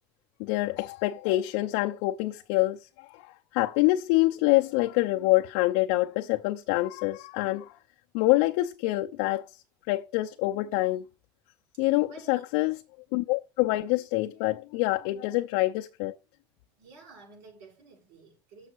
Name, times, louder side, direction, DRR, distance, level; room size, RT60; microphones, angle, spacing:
voice 1, 0.4-7.8 8.1-11.0 11.8-12.7 13.1-16.2, left 18 dB, 90° left, 0.7 m, -26 dB
voice 2, 11.7-12.5 16.8-18.7, right 3 dB, 80° right, 6.0 m, -52 dB
7.0 x 6.5 x 4.7 m
cardioid pair, 165°, 10 cm